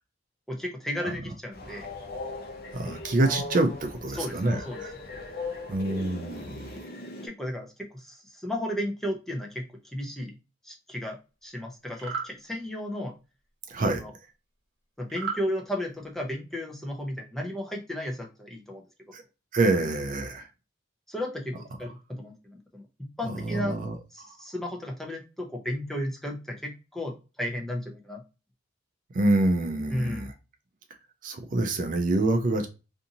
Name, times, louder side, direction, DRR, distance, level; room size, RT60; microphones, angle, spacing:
voice 1, 0.5-1.9 4.1-4.4 4.7-4.8 7.2-9.6 9.9-10.3 10.6-13.1 13.9-14.1 15.0-19.1 19.8-19.9 21.1-22.8 23.2-23.8 24.1-28.2 29.9-30.3, left 1 dB, ahead, 0.6 m, -34 dB
Train, 1.5-7.3, left 3 dB, 55° left, 0.6 m, -39 dB
voice 2, 2.7-4.9 5.7-6.8 13.7-14.0 19.1-19.2 19.5-20.5 23.4-23.9 29.1-30.3 31.2-32.7, right 2 dB, 45° right, 0.4 m, -26 dB
sound 1, 11.9-12.3 15.1-15.4, right 6 dB, 80° right, 0.9 m, -33 dB
2.6 x 2.6 x 2.7 m
head